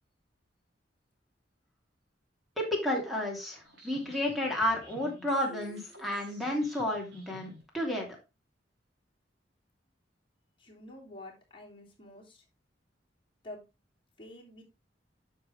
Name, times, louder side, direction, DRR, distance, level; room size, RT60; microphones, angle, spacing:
voice 1, 2.6-8.1, left 1 dB, ahead, 0 dB, 2.8 m, -31 dB
sound 1, 3.6-7.6, equal, 70° right, 3.9 m, -52 dB
voice 2, 10.6-12.4 13.4-13.6 14.2-14.6, left 1 dB, 30° left, -2 dB, 3.3 m, -48 dB
9.3 x 6.5 x 3.5 m, 0.26 s
head